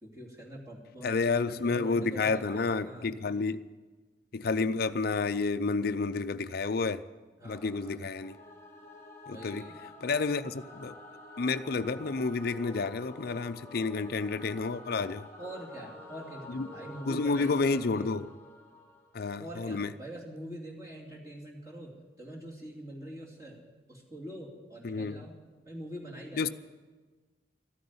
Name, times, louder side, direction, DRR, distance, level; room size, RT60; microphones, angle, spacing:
voice 1, 0.0-3.1 7.4-8.2 9.3-9.8 15.4-18.1 19.4-21.9 22.2-23.6 23.9-25.4 25.6-26.5, right 1 dB, 15° right, -3 dB, 2.8 m, -44 dB
voice 2, 1.0-3.7 4.3-7.0 7.5-8.3 9.3-9.6 10.0-10.9 11.4-15.3 16.5-16.7 17.1-18.3 19.1-19.9 24.8-25.2 26.4-26.5, left 4 dB, 55° left, 12 dB, 0.5 m, -30 dB
Singing / Musical instrument, 8.1-19.4, left 2 dB, 15° left, 1.5 m, -49 dB
14.0 x 9.5 x 9.5 m, 1.3 s
head